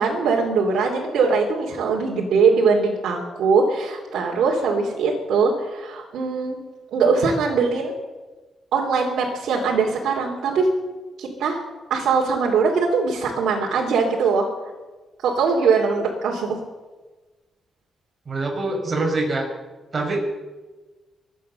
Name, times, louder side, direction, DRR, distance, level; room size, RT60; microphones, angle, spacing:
voice 1, 0.0-6.6 6.9-7.9 8.7-10.7 11.2-11.6 11.9-14.5 15.2-16.6, right 4 dB, 85° right, -3 dB, 2.7 m, -21 dB
voice 2, 18.2-19.5 19.9-20.2, right 2 dB, 35° right, 1 dB, 5.1 m, -24 dB
23.5 x 9.2 x 6.7 m, 1.2 s
cardioid pair, 110°, 0 cm